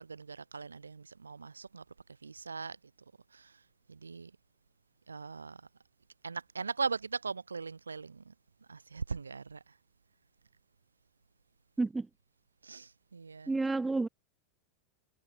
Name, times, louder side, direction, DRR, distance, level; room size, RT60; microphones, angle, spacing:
voice 1, 0.0-1.8 2.2-2.8 3.3-3.6 3.9-4.3 5.1-5.7 6.2-8.3 8.7-9.8 12.6-13.6, right 5 dB, 75° right, 5.5 m, -40 dB
voice 2, 13.5-14.1, right 3 dB, 10° right, 2.7 m, -30 dB
figure-of-eight pair, 85°, 0 cm